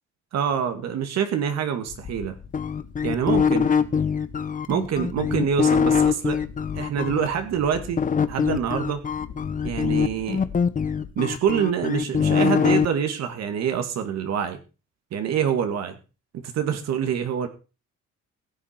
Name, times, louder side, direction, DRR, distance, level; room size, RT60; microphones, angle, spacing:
voice 1, 0.3-2.4 3.0-3.7 4.7-6.4 6.7-9.0 9.6-10.4 11.2-14.6 15.1-16.0 16.4-17.5, right 8 dB, 60° right, 7 dB, 2.2 m, -26 dB
sound 1, 1.9-11.1, left 7 dB, 60° left, 4.1 m, -41 dB
sound 2, 2.5-7.3 8.0-12.9, left 6 dB, 25° left, 0.9 m, -23 dB
16.0 x 7.5 x 5.9 m, 0.33 s
cardioid pair, 135°, 29 cm